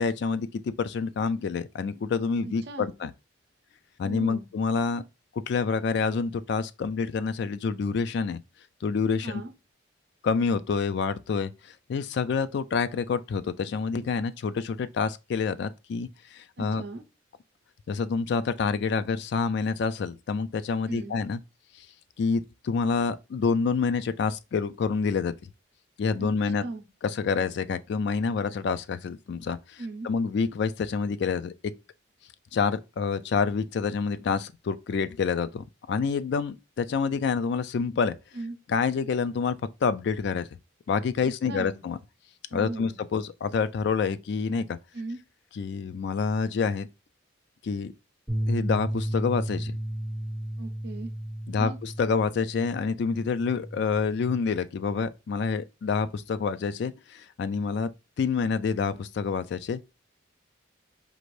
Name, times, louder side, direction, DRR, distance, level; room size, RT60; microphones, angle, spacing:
voice 1, 0.0-3.1 4.0-5.0 5.5-8.4 8.8-9.4 10.2-16.8 17.9-21.4 21.8-21.9 22.2-25.3 26.0-26.6 27.0-31.5 32.5-38.2 38.7-40.5 40.9-42.0 42.5-44.8 45.5-46.9 47.6-47.9 48.5-49.7 51.5-57.9 58.2-59.8, left 5 dB, 55° left, 0.3 m, -27 dB
voice 2, 2.4-2.9 4.0-4.5 9.2-9.5 16.6-17.0 20.9-21.1 26.2-26.8 29.8-30.1 38.3-38.5 41.5-41.8 42.5-43.0 44.9-45.2 50.6-51.1 51.6-51.8, right 2 dB, 55° right, 0.6 m, -37 dB
sound 1, 48.3-54.5, right 1 dB, ahead, 1.3 m, -33 dB
5.2 x 2.5 x 3.1 m
head